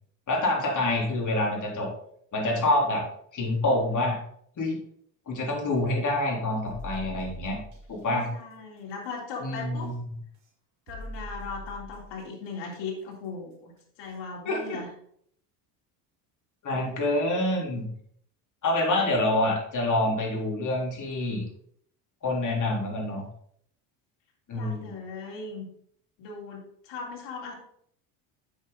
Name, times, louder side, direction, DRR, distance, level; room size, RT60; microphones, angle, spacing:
voice 1, 0.3-1.9 2.3-3.1 3.3-4.2 4.6-4.8 5.3-7.6 7.9-8.3 9.4-9.9 14.5-14.8 16.6-17.9 18.6-21.4 22.2-23.2 24.5-25.0, left 2 dB, 40° left, -2 dB, 3.8 m, -26 dB
sound 1, 6.7-7.9 9.8-9.9 10.9-12.2 14.0-14.1 14.6-14.7, equal, 75° right, 3.0 m, -41 dB
voice 2, 8.3-9.9 10.9-14.9 24.5-25.7 26.2-27.5, left 4 dB, 70° left, -2 dB, 3.5 m, -38 dB
7.8 x 7.1 x 4.0 m, 0.66 s
supercardioid pair, 90°, 46 cm